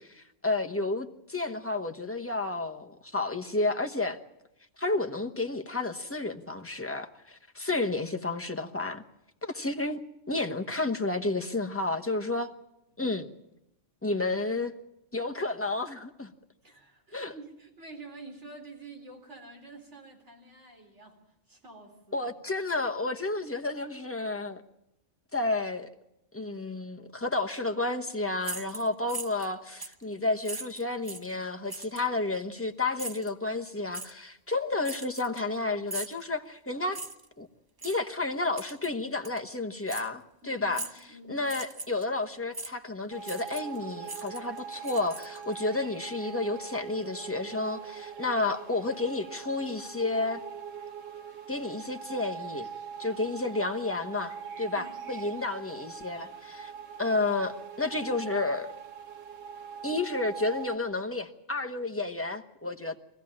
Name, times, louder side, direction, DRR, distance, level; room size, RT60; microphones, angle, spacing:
voice 1, 0.0-4.2 4.8-9.0 9.4-10.0 10.3-12.5 13.0-13.3 14.0-14.7 15.1-16.3 17.1-17.3 22.1-24.6 25.3-25.9 26.3-37.0 37.4-37.5 37.8-40.8 41.3-50.4 51.5-52.7 53.0-56.7 57.0-58.7 59.8-63.0, left 2 dB, 10° left, 1.0 m, -31 dB
voice 2, 16.6-21.2 21.5-22.3 40.4-41.5 54.7-55.0, right 2 dB, 65° right, 4.2 m, -48 dB
sound 1, 28.4-29.5 29.8-30.0 30.4-31.3 31.7-32.1 33.0-33.3 33.9-34.1 34.8-35.5 35.9-36.2 36.9-37.3 37.8-38.0 38.6-38.9 39.2-39.4 39.9-40.1 40.7-41.0 41.4-42.0 42.5-42.7 43.2-43.8 44.0-45.5, right 2 dB, 25° right, 0.6 m, -39 dB
sound 2, 43.1-60.8, right 7 dB, 90° right, 1.5 m, -42 dB
23.5 x 15.5 x 8.6 m
omnidirectional pair, 1.3 m